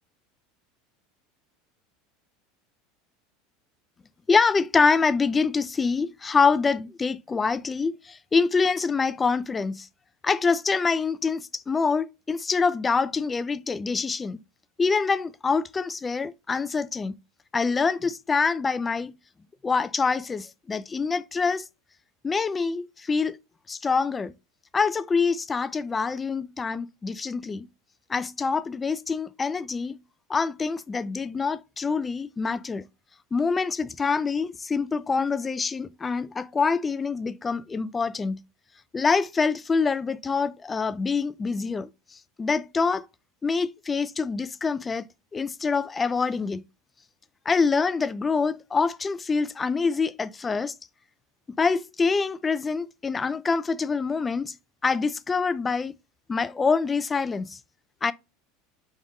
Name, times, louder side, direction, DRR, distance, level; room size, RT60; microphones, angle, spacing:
voice 1, 4.3-9.9 10.2-14.4 14.8-17.2 17.5-19.1 19.6-21.6 22.2-23.4 23.7-24.3 24.7-27.7 28.1-30.0 30.3-32.9 33.3-38.4 38.9-43.1 43.4-46.6 47.5-50.7 51.5-54.6 54.8-55.9 56.3-57.6 58.0-58.1, left 4 dB, 20° left, 0.6 m, -25 dB
5.1 x 5.1 x 3.9 m
hypercardioid pair, 80°, 0 cm